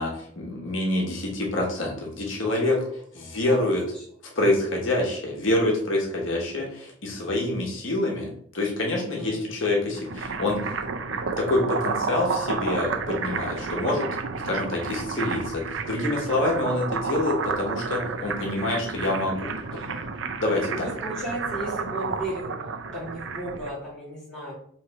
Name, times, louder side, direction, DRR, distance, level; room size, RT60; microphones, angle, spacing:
voice 1, 0.0-2.8 3.1-3.8 4.3-10.6 11.1-14.1 14.4-19.5 20.4-20.7, left 2 dB, 75° left, -1 dB, 1.1 m, -26 dB
voice 2, 2.4-2.9 3.2-4.1 4.5-4.6 9.0-9.4 13.3-13.7 19.7-20.1 20.7-22.5 22.9-24.5, right 1 dB, 5° left, -8 dB, 1.8 m, -36 dB
sound 1, 9.8-23.7, right 4 dB, 70° right, 0.4 m, -31 dB
3.2 x 3.2 x 4.6 m, 0.66 s
head